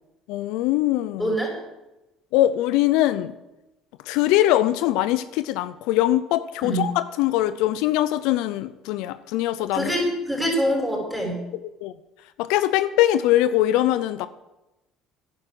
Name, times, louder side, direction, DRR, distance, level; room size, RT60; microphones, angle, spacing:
voice 1, 0.3-1.4 2.3-3.3 4.1-9.9 11.8-11.9 12.4-14.3, left 14 dB, 80° left, 14 dB, 0.5 m, -22 dB
voice 2, 1.2-1.5 6.6-6.8 9.7-11.4, equal, 5° left, 0 dB, 5.6 m, -24 dB
10.5 x 9.8 x 7.8 m, 0.97 s
supercardioid pair, 95°, 0 cm